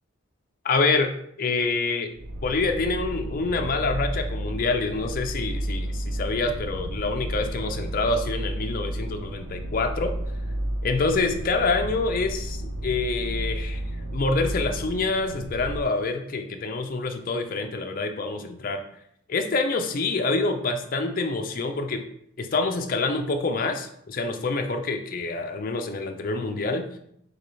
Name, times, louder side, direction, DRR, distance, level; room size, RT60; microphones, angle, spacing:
voice 1, 0.6-1.1 1.4-2.1 2.4-10.1 10.8-13.8 14.1-18.8 19.3-22.0 22.4-26.8, left 3 dB, 40° left, 5 dB, 0.4 m, -26 dB
sound 1, 2.2-15.8, right 1 dB, 75° right, 0.5 m, -32 dB
6.6 x 2.3 x 3.2 m, 0.72 s
head